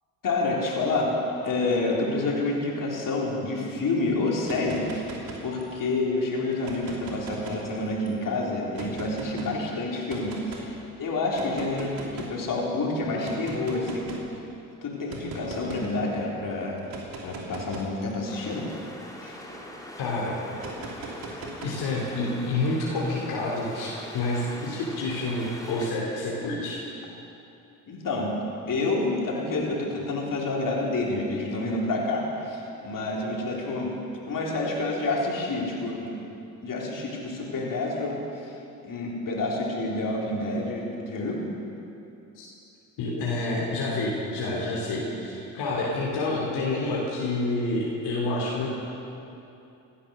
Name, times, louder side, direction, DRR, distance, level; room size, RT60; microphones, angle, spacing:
voice 1, 0.2-14.1 14.8-16.9 17.2-18.7 19.2-19.4 27.9-28.4 28.7-34.0 34.3-36.1 36.6-38.5 38.8-41.4, left 2 dB, 50° left, -3 dB, 4.0 m, -28 dB
sound 1, 4.3-5.9 6.5-8.1 8.7-9.5 10.1-10.7 11.3-12.4 13.2-14.3 15.1-15.9 16.8-19.6 20.6-22.1, right 3 dB, 55° right, 3.0 m, -40 dB
sound 2, 18.3-25.9, left 1 dB, 10° left, 2.8 m, -42 dB
voice 2, 20.0-20.4 21.6-26.8 42.3-42.5 43.0-48.7, left 2 dB, 70° left, -5 dB, 3.0 m, -28 dB
16.5 x 11.5 x 6.5 m, 2.8 s
hypercardioid pair, 55°, 41 cm